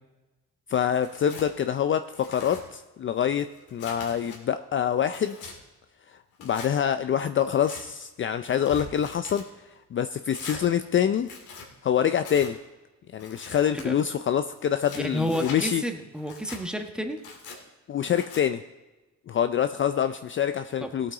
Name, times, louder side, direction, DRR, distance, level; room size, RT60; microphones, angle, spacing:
voice 1, 0.7-5.5 6.4-9.4 9.9-11.3 11.8-12.6 13.1-15.8 17.9-18.6 19.3-21.1, left 9 dB, 40° left, 10 dB, 0.5 m, -26 dB
Tearing, 0.9-1.5 2.0-2.6 3.2-4.4 4.9-5.6 6.3-6.7 7.4-7.8 8.4-9.5 10.3-10.6 11.2-11.7 12.2-12.5 13.2-13.9 14.6-15.6 16.2-16.6 17.2-17.6 18.1-18.4, left 5 dB, 90° left, 2.5 m, -43 dB
voice 2, 14.9-17.2 20.8-20.9, equal, 5° right, 4 dB, 1.3 m, -30 dB
17.5 x 8.5 x 3.9 m, 1.1 s
cardioid pair, 90°, 30 cm